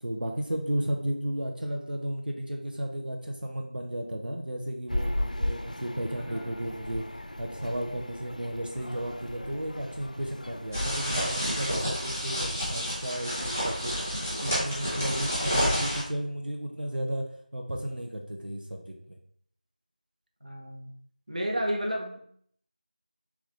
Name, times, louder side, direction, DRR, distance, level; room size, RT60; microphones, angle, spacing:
voice 1, 0.0-7.1 7.4-13.9 14.4-17.3 17.5-19.2, right 1 dB, 80° right, 1 dB, 0.7 m, -34 dB
sound 1, 4.9-11.4, left 1 dB, 55° left, 0.4 m, -36 dB
voice 2, 6.2-6.6 20.4-20.9 21.3-22.2, equal, 50° right, 0 dB, 0.9 m, -32 dB
sound 2, 10.7-16.0, equal, 15° right, 0.9 m, -29 dB
3.5 x 3.1 x 3.8 m, 0.64 s
figure-of-eight pair, 180°, 5 cm